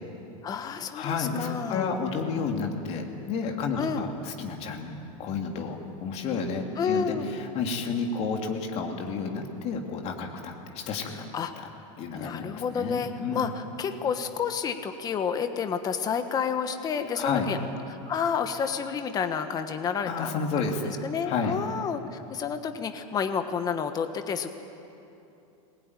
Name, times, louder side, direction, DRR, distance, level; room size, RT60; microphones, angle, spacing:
voice 1, 0.4-1.9 3.8-4.0 6.8-7.3 11.0-11.7 12.1-17.6 17.9-20.3 20.8-24.5, left 6 dB, 20° left, 8 dB, 1.2 m, -30 dB
voice 2, 0.9-11.2 12.0-13.5 17.2-17.5 20.1-20.9 21.2-21.6, left 5 dB, 35° left, 2 dB, 2.9 m, -31 dB
20.5 x 20.5 x 9.8 m, 2.8 s
supercardioid pair, 150°, 17 cm